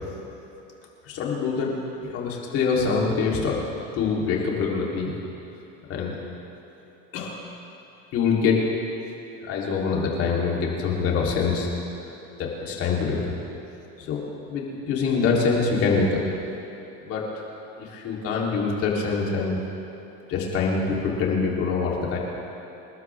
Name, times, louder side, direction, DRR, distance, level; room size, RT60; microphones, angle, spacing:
voice 1, 1.1-1.7 2.0-3.6 3.9-5.1 5.9-6.2 7.1-7.4 8.1-8.6 9.4-11.7 12.4-13.3 14.0-14.2 14.5-16.2 17.1-17.3 17.8-19.6 20.3-22.2, left 5 dB, 50° left, -3 dB, 3.9 m, -24 dB
29.0 x 12.5 x 3.7 m, 3.0 s
supercardioid pair, 115°, 29 cm